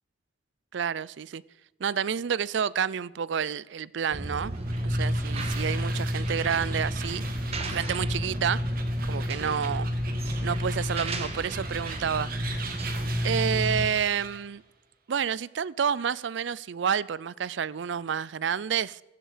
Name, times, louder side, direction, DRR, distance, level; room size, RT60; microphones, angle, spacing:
voice 1, 0.7-1.4 1.8-4.5 4.8-7.2 7.6-8.6 9.1-9.9 10.4-12.3 13.2-14.6 15.1-19.0, right 7 dB, 75° right, 0.4 m, -29 dB
sound 1, 4.1-13.9, equal, 35° right, 1.4 m, -30 dB
sound 2, 4.4-14.5, right 5 dB, 50° right, 1.9 m, -42 dB
15.5 x 15.0 x 5.0 m
head